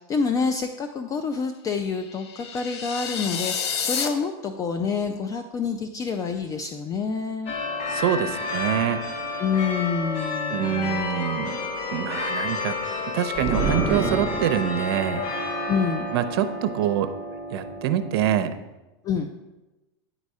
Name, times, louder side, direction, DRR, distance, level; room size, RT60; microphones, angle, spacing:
voice 1, 0.0-7.5 9.4-11.0 15.7-16.1 19.0-19.3, left 5 dB, 25° left, 7 dB, 0.4 m, -27 dB
sound 1, 2.1-4.1, left 6 dB, 85° left, 0.9 m, -29 dB
sound 2, 7.5-18.5, left 3 dB, 45° left, 1.4 m, -30 dB
voice 2, 7.9-9.0 10.5-11.6 11.9-12.7 13.1-15.2 16.1-17.1 17.5-18.5, right 10 dB, 70° right, 10 dB, 0.7 m, -25 dB
sound 3, 13.3-14.9, right 5 dB, 15° right, 0.8 m, -27 dB
9.7 x 4.1 x 4.8 m, 1.1 s
supercardioid pair, 130°, 13 cm